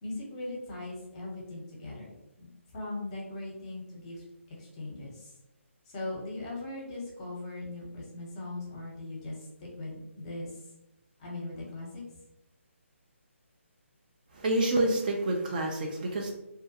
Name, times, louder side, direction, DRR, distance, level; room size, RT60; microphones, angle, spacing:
voice 1, 0.0-5.3 5.9-10.6 11.2-12.0, left 2 dB, 30° left, -2 dB, 0.8 m, -40 dB
voice 2, 14.3-16.3, right 1 dB, 40° right, 1 dB, 0.4 m, -28 dB
2.3 x 2.2 x 2.7 m, 0.90 s
figure-of-eight pair, 150°, 7 cm